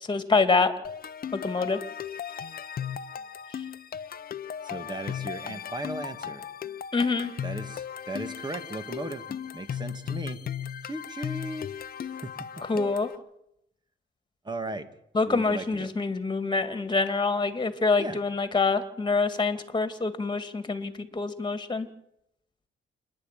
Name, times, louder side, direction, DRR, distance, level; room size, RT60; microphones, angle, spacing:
voice 1, 0.1-0.7 1.3-1.8 6.9-7.3 12.7-13.1 15.1-21.9, left 4 dB, 25° left, 10 dB, 2.4 m, -26 dB
sound 1, 0.8-13.1, left 8 dB, 50° left, 0.9 m, -37 dB
voice 2, 4.6-6.5 7.4-10.4 10.8-11.7 12.0-12.5 14.4-14.9 15.3-15.9 18.0-18.2, right 2 dB, 20° right, 9 dB, 2.1 m, -37 dB
27.5 x 10.5 x 9.2 m, 0.78 s
cardioid pair, 90°, 20 cm